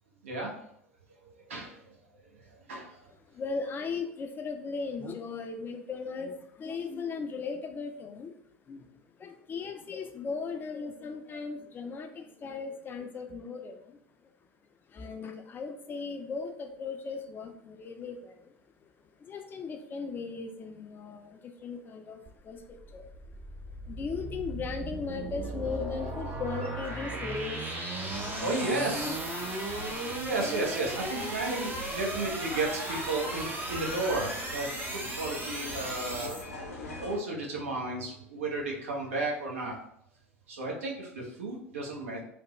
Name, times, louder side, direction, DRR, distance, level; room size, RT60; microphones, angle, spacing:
voice 1, 0.2-0.7 1.2-3.1 27.2-27.4 27.8-29.2 29.7-36.4 36.9-39.8 40.5-42.2, right 2 dB, 70° right, -1 dB, 0.8 m, -34 dB
voice 2, 3.3-8.4 8.7-8.9 9.2-14.0 14.9-18.5 19.2-23.1 23.8-27.6 28.5-29.2, left 4 dB, 30° left, 5 dB, 0.4 m, -37 dB
sound 1, 22.3-36.4, right 2 dB, 25° right, 0.6 m, -37 dB
sound 2, 28.1-37.2, left 2 dB, 85° left, 0.6 m, -43 dB
3.3 x 2.1 x 3.0 m, 0.69 s
figure-of-eight pair, 75°, 7 cm